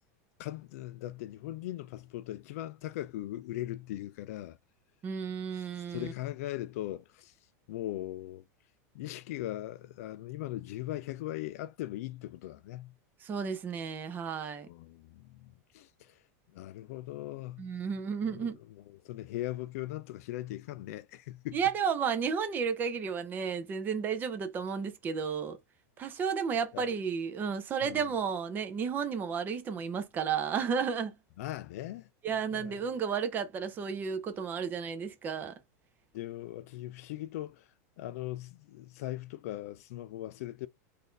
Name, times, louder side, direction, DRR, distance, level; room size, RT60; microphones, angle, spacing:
voice 1, 0.4-4.6 5.9-7.3 7.7-8.4 8.9-12.9 14.7-16.2 16.5-17.7 18.2-21.6 26.7-26.9 27.8-28.0 31.4-32.1 32.5-32.9 36.1-37.7 38.0-40.7, left 15 dB, 60° left, 0.4 m, -39 dB
voice 2, 5.0-6.1 13.2-14.7 17.6-18.6 21.5-25.6 26.0-31.1 32.2-35.5, right 6 dB, 20° right, 0.7 m, -32 dB
4.0 x 2.7 x 3.2 m
supercardioid pair, 165°, 9 cm